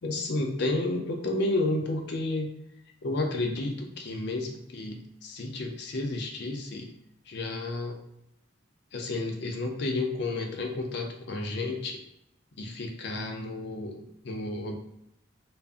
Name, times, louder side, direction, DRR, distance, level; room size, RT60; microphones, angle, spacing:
voice 1, 0.0-2.5 3.0-6.9 7.3-8.0 8.9-12.0 12.6-14.8, left 2 dB, 60° left, 2 dB, 0.5 m, -31 dB
2.4 x 2.0 x 3.5 m, 0.79 s
head